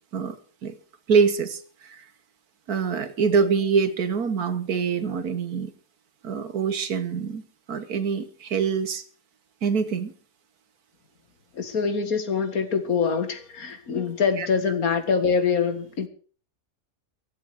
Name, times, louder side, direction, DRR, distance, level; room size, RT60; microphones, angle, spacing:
voice 1, 1.1-2.0 2.7-5.7 6.2-9.0 9.6-10.1 14.4-14.5, right 6 dB, 75° right, 11 dB, 1.8 m, -25 dB
voice 2, 11.5-16.1, left 6 dB, 65° left, 9 dB, 2.2 m, -24 dB
24.0 x 8.3 x 5.0 m, 0.42 s
omnidirectional pair, 1.6 m